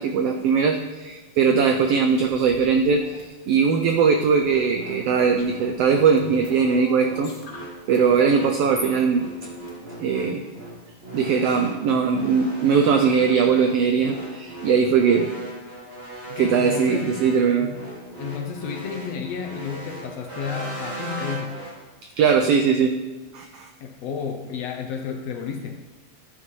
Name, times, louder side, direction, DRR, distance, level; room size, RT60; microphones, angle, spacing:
voice 1, 0.0-7.3 7.9-9.3 10.0-10.4 11.1-15.3 16.4-17.7 22.2-22.9 23.3-23.7, right 6 dB, 85° right, 5 dB, 1.3 m, -20 dB
sound 1, 1.4-1.5 2.1-3.3 3.9-4.5 5.3-5.8 6.2-8.0 8.3-8.4 9.6-9.7, left 3 dB, 40° left, 1.3 m, -43 dB
sound 2, 4.4-21.7, right 1 dB, 20° right, 2.3 m, -38 dB
voice 2, 16.3-17.3 17.6-17.9 18.2-21.6 23.8-25.8, left 6 dB, 75° left, 4 dB, 1.5 m, -32 dB
13.0 x 8.1 x 3.1 m, 1.2 s
omnidirectional pair, 3.4 m